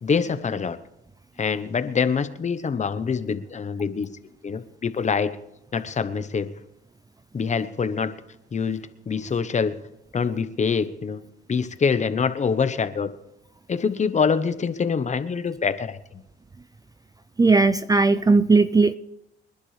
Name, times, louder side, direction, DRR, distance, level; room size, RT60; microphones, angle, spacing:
voice 1, 0.0-0.8 1.4-4.1 4.4-5.3 5.7-6.5 7.3-8.1 8.5-9.8 10.1-11.2 11.5-13.1 13.7-16.0, left 5 dB, 35° left, 12 dB, 1.0 m, -25 dB
voice 2, 17.4-19.0, right 3 dB, 20° right, 13 dB, 0.4 m, -17 dB
26.0 x 11.0 x 3.3 m, 0.81 s
cardioid pair, 90°, 20 cm